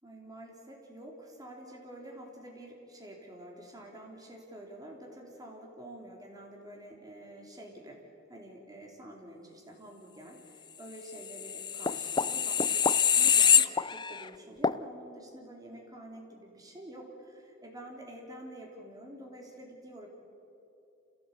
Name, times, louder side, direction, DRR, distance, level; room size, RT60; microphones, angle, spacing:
voice 1, 0.0-8.0 8.3-20.1, right 1 dB, 20° right, -1 dB, 3.9 m, -48 dB
sound 1, 11.3-14.3 14.6-14.8, left 7 dB, 20° left, 0.5 m, -25 dB
27.5 x 16.5 x 8.5 m, 2.8 s
head